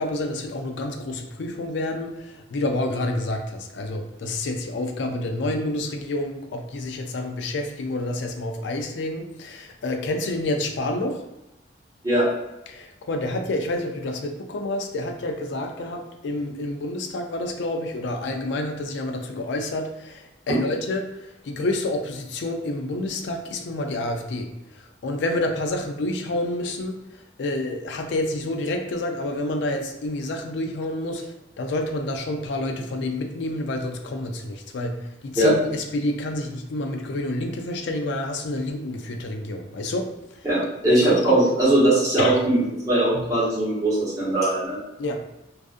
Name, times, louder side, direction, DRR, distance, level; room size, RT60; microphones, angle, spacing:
voice 1, 0.0-11.2 12.7-27.0 27.4-31.2 31.6-40.1 40.9-41.4 42.2-42.5 45.0-45.2, left 1 dB, 75° left, 5 dB, 0.4 m, -28 dB
voice 2, 40.4-42.6 42.9-44.8, right 1 dB, 15° right, -10 dB, 1.0 m, -20 dB
2.4 x 2.4 x 2.4 m, 0.94 s
head